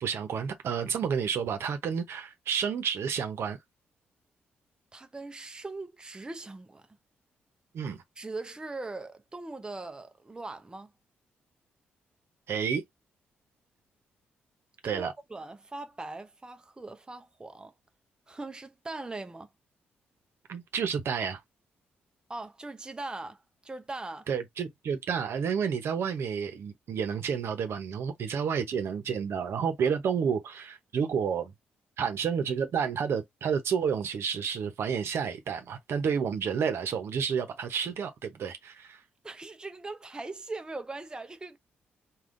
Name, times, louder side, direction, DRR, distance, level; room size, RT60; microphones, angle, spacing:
voice 1, 0.0-3.6 7.7-8.0 12.5-12.8 14.8-15.1 20.5-21.4 24.3-31.5 32.0-39.0, right 7 dB, 65° right, 0.8 m, -30 dB
voice 2, 4.9-6.9 8.2-10.9 14.8-17.7 18.3-19.5 22.3-24.3 39.2-41.6, right 2 dB, 20° right, 0.5 m, -40 dB
3.5 x 2.4 x 2.5 m
supercardioid pair, 60°, 5 cm